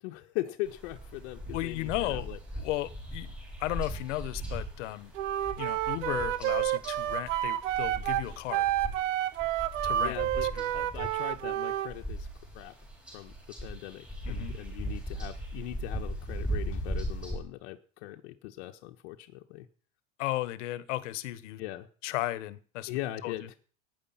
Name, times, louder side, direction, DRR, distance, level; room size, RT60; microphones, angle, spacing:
voice 1, 0.0-2.4 10.0-12.3 12.5-12.7 13.1-13.3 13.6-19.7 21.6-21.9 22.9-23.5, left 15 dB, 60° left, 3 dB, 1.3 m, -40 dB
sound 1, 0.7-17.4, right 1 dB, 5° right, 5.5 m, -39 dB
voice 2, 1.5-2.3 2.6-3.3 3.6-5.1 5.6-8.7 9.8-10.2 10.5-10.7 14.3-14.6 20.2-21.6 22.0-22.9 23.2-23.5, left 16 dB, 75° left, 16 dB, 1.4 m, -35 dB
Wind instrument woodwind instrument, 5.1-11.9, right 13 dB, 90° right, 1.3 m, -30 dB
18.0 x 9.9 x 5.8 m, 0.42 s
supercardioid pair, 170°, 37 cm